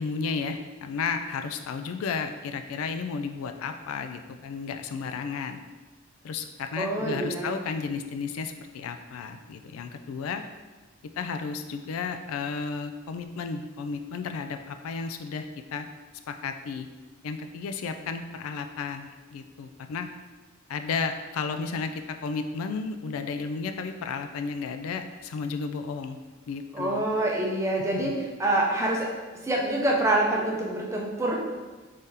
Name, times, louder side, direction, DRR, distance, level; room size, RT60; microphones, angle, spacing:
voice 1, 0.0-5.6 6.2-10.4 11.2-15.9 16.3-16.9 17.2-20.1 20.7-26.2 26.5-27.0 27.9-28.0, left 5 dB, 85° left, 7 dB, 0.3 m, -33 dB
voice 2, 6.8-7.6 26.7-28.1 28.4-29.1 29.4-31.4, right 1 dB, 15° right, -2 dB, 0.5 m, -26 dB
3.7 x 3.3 x 2.7 m, 1.3 s
head